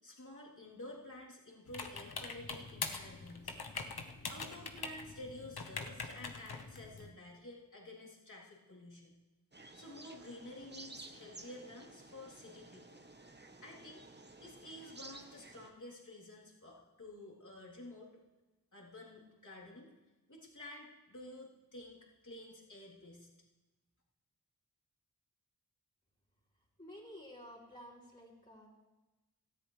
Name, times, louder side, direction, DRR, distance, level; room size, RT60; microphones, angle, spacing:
voice 1, 0.0-3.5 4.3-9.1 9.7-13.0 13.6-14.0 14.4-18.1 18.7-19.9 20.3-23.3, left 1 dB, 50° left, -5 dB, 3.4 m, -51 dB
sound 1, 1.7-7.1, left 4 dB, 75° left, 1.0 m, -44 dB
sound 2, 9.5-15.7, right 2 dB, 30° right, 1.0 m, -54 dB
voice 2, 26.8-28.7, equal, 25° left, -7 dB, 3.5 m, -52 dB
18.0 x 13.5 x 3.3 m, 1.1 s
wide cardioid pair, 50°, 37 cm